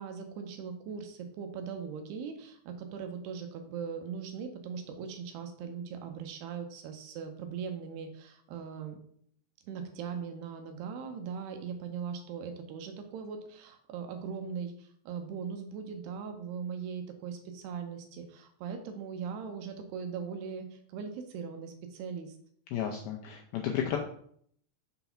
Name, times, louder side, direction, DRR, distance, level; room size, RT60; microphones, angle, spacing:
voice 1, 0.0-9.0 9.6-22.4, right 6 dB, 80° right, 5 dB, 2.7 m, -40 dB
voice 2, 22.7-24.0, left 9 dB, 80° left, 2 dB, 2.2 m, -32 dB
6.8 x 4.1 x 5.7 m, 0.63 s
omnidirectional pair, 5.0 m